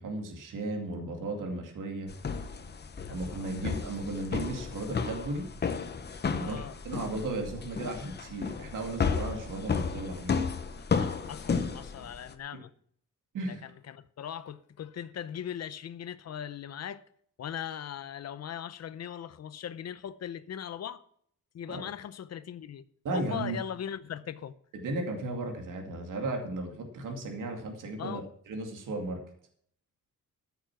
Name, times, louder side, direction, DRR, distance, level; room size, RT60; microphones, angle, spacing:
voice 1, 0.0-2.1 3.1-5.5 6.3-10.4 13.3-13.6 21.7-21.9 23.0-23.6 24.7-28.2 28.5-29.2, right 2 dB, 70° right, 2.3 m, -35 dB
sound 1, 2.1-12.3, left 5 dB, 30° left, 1.0 m, -33 dB
voice 2, 3.0-3.7 6.3-6.8 10.8-12.7 13.5-17.0 17.4-21.0 21.5-22.8 23.1-24.5 28.0-28.2, left 9 dB, 50° left, 0.7 m, -39 dB
13.5 x 7.1 x 6.0 m
wide cardioid pair, 165°, 32 cm